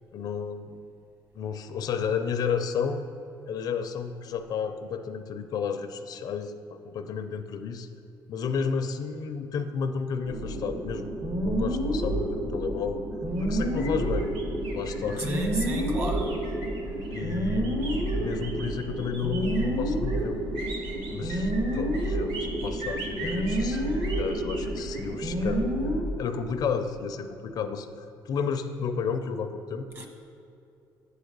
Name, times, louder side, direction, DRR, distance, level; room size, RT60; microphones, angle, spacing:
voice 1, 0.1-0.8 1.3-3.0 3.5-7.9 8.3-11.1 11.4-13.0 13.4-14.3 14.7-15.3 17.1-17.8 18.1-20.4 21.1-23.8 24.2-25.7 26.2-29.9, left 6 dB, 55° left, 8 dB, 0.5 m, -32 dB
sound 1, 10.2-26.0, right 1 dB, 55° right, 1.6 m, -29 dB
sound 2, 13.3-25.5, right 2 dB, 90° right, 1.2 m, -42 dB
voice 2, 15.2-16.4 30.0-30.1, right 1 dB, 35° right, 2 dB, 1.2 m, -32 dB
8.3 x 4.7 x 6.6 m, 2.6 s
cardioid pair, 130°, 8 cm